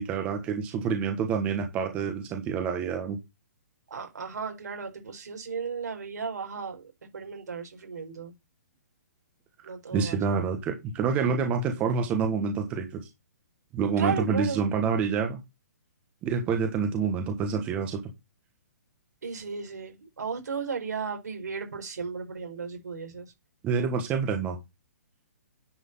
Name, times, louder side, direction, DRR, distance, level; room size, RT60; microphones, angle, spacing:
voice 1, 0.0-3.2 9.9-13.0 13.7-15.4 16.2-18.0 23.6-24.6, right 5 dB, 15° right, 1.4 m, -27 dB
voice 2, 3.9-8.3 9.6-10.5 14.0-14.6 19.2-23.3, right 5 dB, 80° right, 5.1 m, -35 dB
10.0 x 5.1 x 5.6 m
hypercardioid pair, 170°, 9 cm